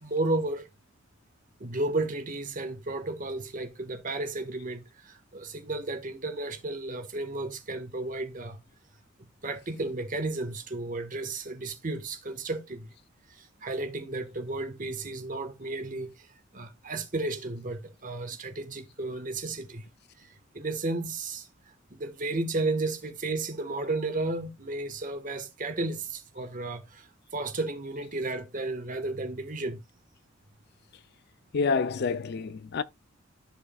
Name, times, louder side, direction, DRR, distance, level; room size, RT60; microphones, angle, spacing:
voice 1, 0.0-0.7 1.6-8.6 9.4-12.9 13.4-16.3 16.5-19.8 20.2-21.5 21.9-29.8, right 2 dB, 40° right, 1.4 m, -33 dB
voice 2, 31.5-32.8, left 5 dB, 55° left, 0.4 m, -28 dB
14.0 x 4.8 x 2.3 m
head